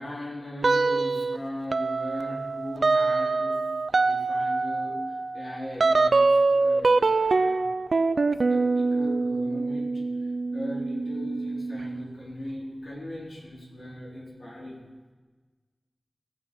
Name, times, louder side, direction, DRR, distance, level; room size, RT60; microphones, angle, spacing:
voice 1, 0.0-3.6 3.9-7.7 8.5-14.8, left 1 dB, 75° left, -5 dB, 3.9 m, -38 dB
sound 1, 0.6-1.4 1.7-12.0, right 3 dB, 80° right, 0.4 m, -24 dB
15.5 x 5.6 x 7.0 m, 1.3 s
wide cardioid pair, 70°, 0 cm